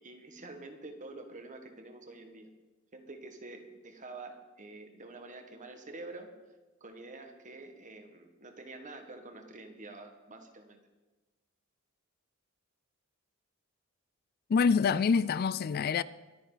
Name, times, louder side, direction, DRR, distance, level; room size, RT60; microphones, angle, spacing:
voice 1, 0.0-2.5 2.9-6.3 6.8-10.8, right 2 dB, 35° right, 1.7 m, -47 dB
voice 2, 14.5-16.0, left 5 dB, 45° left, 0.3 m, -26 dB
23.5 x 9.6 x 4.0 m
head